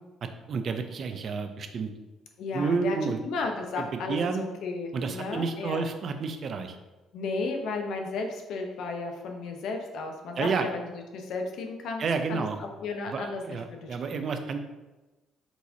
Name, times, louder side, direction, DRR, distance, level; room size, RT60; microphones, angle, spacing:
voice 1, 0.2-1.9 2.5-3.2 3.8-4.5 4.9-6.8 10.4-10.7 12.0-12.6 13.1-14.6, right 5 dB, 50° right, 7 dB, 0.5 m, -30 dB
voice 2, 2.4-3.0 3.2-5.9 7.1-12.0 12.3-14.2, left 3 dB, 70° left, 3 dB, 0.7 m, -34 dB
4.6 x 4.0 x 2.7 m, 1.1 s
supercardioid pair, 80°, 0 cm